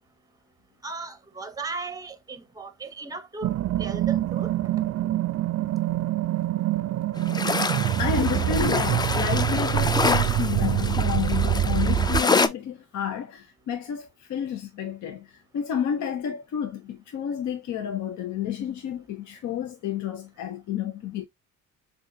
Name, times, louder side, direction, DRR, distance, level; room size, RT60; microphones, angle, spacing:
voice 1, 0.8-4.5, right 4 dB, 10° right, 0.7 m, -36 dB
sound 1, 3.4-12.2, right 13 dB, 55° right, 0.4 m, -25 dB
sound 2, 7.2-12.5, left 3 dB, 15° left, 0.3 m, -27 dB
voice 2, 8.0-21.2, left 9 dB, 70° left, 0.7 m, -30 dB
6.2 x 2.4 x 2.6 m
cardioid pair, 90°, 30 cm